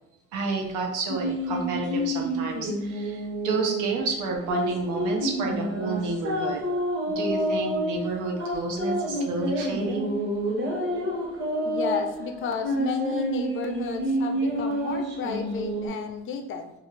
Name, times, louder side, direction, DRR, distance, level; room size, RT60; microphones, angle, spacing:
voice 1, 0.3-6.6 7.2-10.1, right 3 dB, 90° right, 1 dB, 0.7 m, -30 dB
sound 1, 1.1-15.9, equal, 40° right, 1.0 m, -29 dB
voice 2, 11.6-16.7, left 5 dB, 45° left, 5 dB, 0.4 m, -32 dB
2.5 x 2.3 x 3.1 m, 0.84 s
cardioid pair, 90°, 30 cm